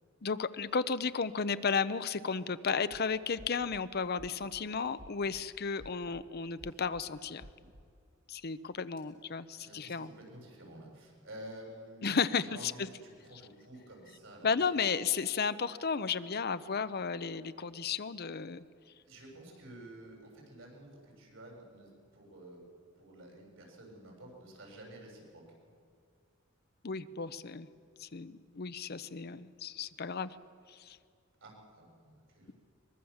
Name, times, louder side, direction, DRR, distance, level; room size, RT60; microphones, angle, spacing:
voice 1, 0.2-7.5 8.3-10.1 12.0-12.9 14.4-18.6 26.8-27.7 28.0-30.3 30.7-31.0, left 5 dB, 50° left, 14 dB, 0.7 m, -33 dB
sound 1, 2.8-3.0 3.4-3.8 4.2-4.6 5.0-5.4 5.8-6.2 6.6-7.0 7.4-7.8, equal, 55° right, 1.7 m, -53 dB
voice 2, 9.5-12.2 12.4-14.5 14.8-14.9 19.0-22.6 23.0-25.4 31.4-32.5, right 1 dB, 75° right, 0 dB, 7.3 m, -51 dB
23.0 x 22.0 x 7.2 m, 2.2 s
head